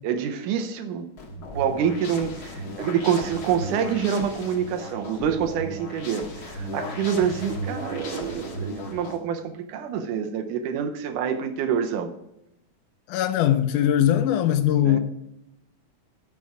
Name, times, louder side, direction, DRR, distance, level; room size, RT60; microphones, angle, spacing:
voice 1, 0.0-1.1 1.5-12.1 14.8-15.0, right 8 dB, 85° right, 2.4 m, -26 dB
sound 1, 1.2-9.2, equal, 45° left, 1.4 m, -35 dB
voice 2, 13.1-15.0, left 11 dB, 85° left, 2.2 m, -20 dB
12.5 x 6.2 x 4.8 m
omnidirectional pair, 3.6 m